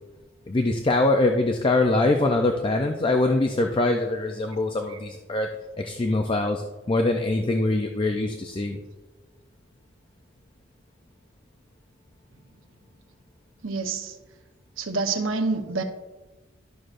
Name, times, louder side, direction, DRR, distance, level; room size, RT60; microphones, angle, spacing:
voice 1, 0.5-5.5 5.8-8.8, left 2 dB, 25° left, 4 dB, 0.4 m, -23 dB
voice 2, 13.6-14.2 14.8-15.8, right 3 dB, 90° right, 5 dB, 0.9 m, -27 dB
12.0 x 6.3 x 2.5 m, 1.1 s
head